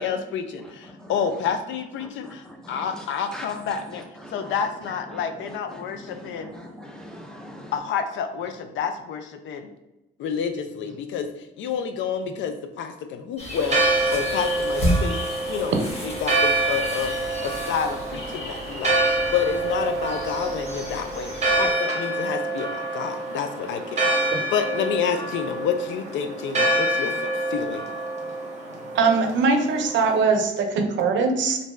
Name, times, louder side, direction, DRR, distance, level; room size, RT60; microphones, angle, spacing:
voice 1, 0.0-4.0 4.3-6.5 7.7-9.7 10.2-11.3 11.6-15.2 15.5-15.8 16.0-17.1 17.4-27.9, left 7 dB, 75° left, 8 dB, 0.4 m, -29 dB
voice 2, 0.6-1.5 2.0-7.8, equal, 5° left, 1 dB, 0.6 m, -42 dB
sound 1, 13.4-21.7, equal, 30° left, 0.8 m, -32 dB
Church bell, 13.6-30.2, right 2 dB, 35° right, 0.8 m, -27 dB
voice 3, 28.9-31.6, right 4 dB, 70° right, 4 dB, 0.5 m, -21 dB
2.6 x 2.2 x 3.1 m, 0.95 s
cardioid pair, 90°, 20 cm